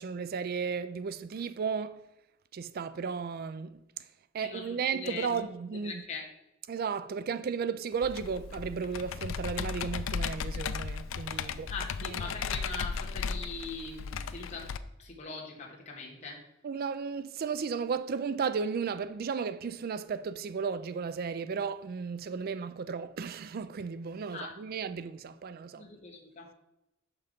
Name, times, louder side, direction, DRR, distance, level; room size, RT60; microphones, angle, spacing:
voice 1, 0.0-2.1 2.5-3.8 4.3-6.0 6.7-11.7 12.0-12.3 16.6-25.9, right 6 dB, 50° right, 0.4 m, -34 dB
voice 2, 4.4-5.4 5.8-6.2 11.7-14.7 15.0-16.4 24.3-24.5 25.8-26.5, left 3 dB, 35° left, 1.4 m, -41 dB
Computer keyboard, 8.0-14.8, left 6 dB, 70° left, 0.4 m, -36 dB
6.5 x 5.8 x 5.1 m
head